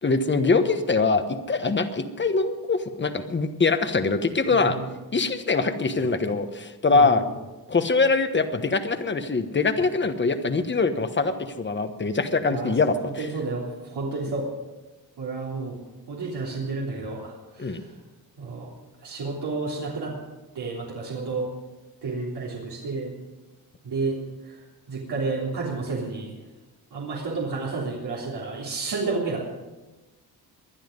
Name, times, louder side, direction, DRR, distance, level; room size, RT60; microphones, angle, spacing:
voice 1, 0.0-4.8 5.1-7.2 7.7-13.0 17.6-17.8, left 4 dB, 30° left, 9 dB, 1.2 m, -23 dB
voice 2, 4.5-4.9 6.9-7.2 12.5-12.9 13.2-14.5 15.2-15.8 16.1-18.0 18.4-18.7 19.0-20.1 20.5-21.5 22.0-23.1 23.8-26.3 26.9-29.4, right 3 dB, 85° right, -5 dB, 3.4 m, -31 dB
20.5 x 11.5 x 5.3 m, 1.1 s
wide cardioid pair, 140°, 39 cm